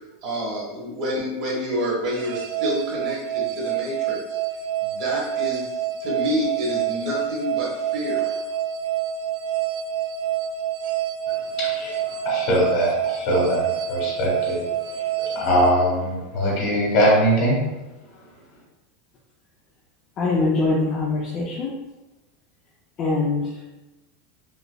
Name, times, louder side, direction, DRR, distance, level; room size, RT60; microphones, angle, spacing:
voice 1, 0.2-4.4 4.8-8.4, equal, 40° right, -3 dB, 1.2 m, -28 dB
sound 1, 2.1-16.5, right 10 dB, 65° right, 0.3 m, -27 dB
voice 2, 11.6-14.6 14.9-17.6, equal, 45° left, -4 dB, 1.4 m, -22 dB
voice 3, 20.2-21.7 23.0-23.4, left 3 dB, 25° left, -4 dB, 0.4 m, -22 dB
5.2 x 2.1 x 2.3 m, 1.0 s
supercardioid pair, 175°, 0 cm